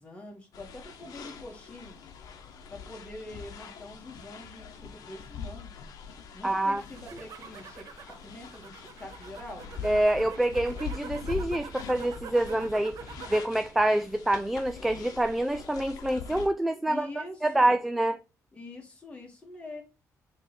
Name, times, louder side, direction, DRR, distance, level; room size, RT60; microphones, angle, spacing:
voice 1, 0.0-2.0 2.7-5.7 6.3-9.7 16.9-17.8 18.5-19.8, left 2 dB, 20° left, 1.9 m, -45 dB
sound 1, 0.5-16.5, left 6 dB, 85° left, 1.0 m, -43 dB
voice 2, 6.4-6.8 9.8-13.0 13.3-18.2, right 1 dB, 5° right, 0.3 m, -26 dB
sound 2, 6.8-13.5 13.9-14.4, right 7 dB, 75° right, 0.8 m, -45 dB
7.2 x 3.3 x 4.1 m
cardioid pair, 160°, 6 cm